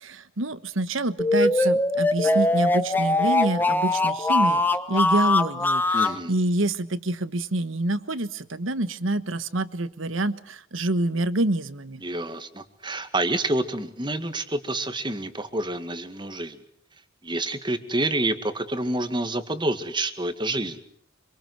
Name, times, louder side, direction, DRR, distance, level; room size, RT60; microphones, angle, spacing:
voice 1, 0.0-4.6 4.9-12.0, right 2 dB, 75° right, 14 dB, 1.3 m, -27 dB
sound 1, 1.2-6.2, left 2 dB, 10° left, 1.2 m, -22 dB
voice 2, 5.9-6.3 12.0-16.6 17.2-20.8, right 2 dB, 25° right, 9 dB, 2.0 m, -28 dB
26.5 x 25.0 x 8.0 m, 0.64 s
head